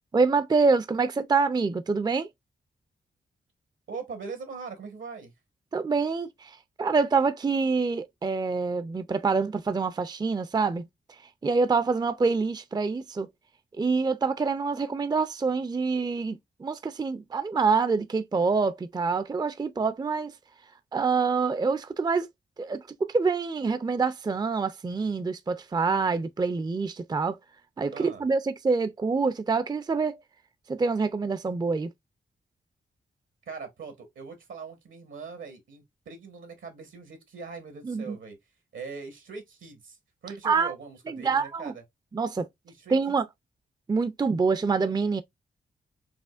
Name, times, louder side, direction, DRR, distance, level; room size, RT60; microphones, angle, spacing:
voice 1, 0.1-2.3 5.7-10.8 11.4-13.3 13.8-20.3 20.9-22.3 22.6-27.4 27.8-30.2 30.7-31.9 37.8-38.2 40.4-40.7 41.1-41.7 42.1-42.5 42.9-43.2 43.9-45.2, right 4 dB, 20° right, 0.4 m, -26 dB
voice 2, 3.9-5.3 27.9-28.2 33.5-38.4 38.7-40.0 40.2-41.8 42.6-43.1, right 5 dB, 80° right, 1.3 m, -41 dB
4.9 x 2.1 x 2.4 m
supercardioid pair, 40°, 20 cm